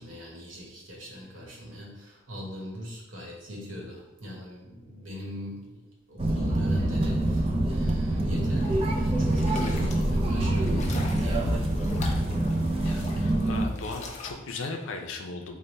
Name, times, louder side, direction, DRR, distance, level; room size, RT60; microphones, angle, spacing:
voice 1, 0.0-5.8 6.1-11.7, left 1 dB, 80° right, -2 dB, 1.1 m, -41 dB
sound 1, 6.2-13.7, right 1 dB, 30° right, 0.4 m, -26 dB
sound 2, 8.5-14.3, left 1 dB, 35° left, 0.5 m, -37 dB
voice 2, 12.8-15.6, left 3 dB, 90° left, 3 dB, 0.5 m, -37 dB
3.3 x 2.1 x 4.0 m, 1.0 s
head